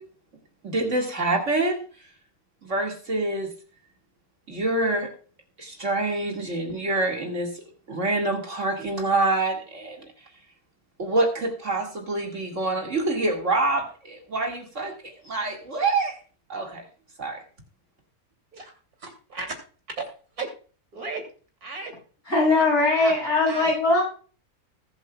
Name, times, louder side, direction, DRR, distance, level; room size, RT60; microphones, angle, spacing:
voice 1, 0.6-1.8 2.6-3.5 4.5-5.1 5.6-7.5 7.9-10.0 11.0-16.2 16.5-16.8 17.2-17.4, right 2 dB, 55° right, 1 dB, 2.4 m, -26 dB
voice 2, 19.0-19.6 20.0-20.1 20.4-20.5 20.9-21.3 21.6-21.9 22.5-22.6 22.9-23.1 23.5-23.7, right 3 dB, 80° right, 3 dB, 3.4 m, -34 dB
voice 3, 22.3-24.0, left 2 dB, 50° left, -4 dB, 7.2 m, -20 dB
20.0 x 8.0 x 2.3 m, 0.40 s
omnidirectional pair, 1.6 m